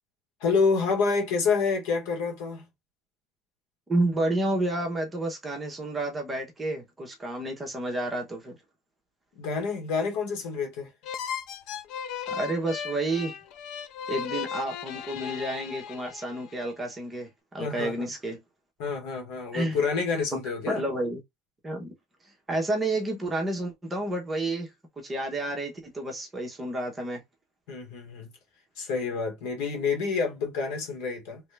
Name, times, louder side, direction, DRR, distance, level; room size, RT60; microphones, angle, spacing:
voice 1, 0.4-2.7 9.4-10.9 17.6-18.1 18.8-20.8 27.7-28.3 28.8-31.4, left 5 dB, 75° left, 1.5 m, -28 dB
voice 2, 3.9-8.5 12.3-13.3 14.1-17.3 17.5-18.4 19.5-19.8 20.3-20.4 20.7-21.2 21.6-21.9 22.5-24.7 25.0-27.2, right 2 dB, 10° right, 1.1 m, -30 dB
sound 1, 11.0-16.5, left 8 dB, 55° left, 0.5 m, -36 dB
3.2 x 2.8 x 3.3 m
cardioid pair, 155°, 0 cm